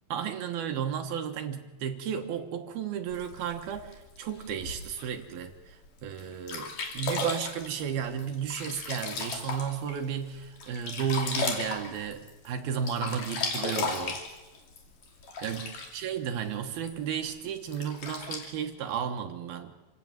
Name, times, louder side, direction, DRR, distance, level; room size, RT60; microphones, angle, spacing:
voice 1, 0.1-14.2 15.4-19.8, right 8 dB, 70° right, 5 dB, 2.6 m, -33 dB
Sink (filling or washing), 3.1-5.1 5.7-5.8 6.2-6.3 6.5-10.0 10.4-12.5 12.7-16.1 16.9-17.0 17.7-18.5, left 4 dB, 45° left, 3.9 m, -35 dB
28.0 x 17.0 x 7.5 m, 1.1 s
omnidirectional pair, 5.5 m